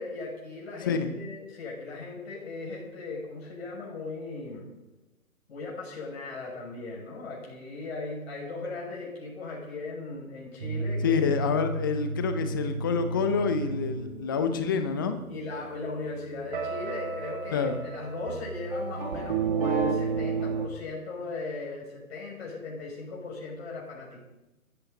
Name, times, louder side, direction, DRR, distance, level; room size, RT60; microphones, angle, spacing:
voice 1, 0.0-4.7 5.5-11.2 15.3-24.2, left 3 dB, 45° left, -2 dB, 6.5 m, -38 dB
sound 1, 10.6-20.7, right 4 dB, 35° right, 1.8 m, -32 dB
voice 2, 11.0-15.2 17.5-17.8, left 6 dB, 15° left, 8 dB, 0.7 m, -27 dB
22.0 x 14.5 x 4.1 m, 1.0 s
figure-of-eight pair, 140°, 44 cm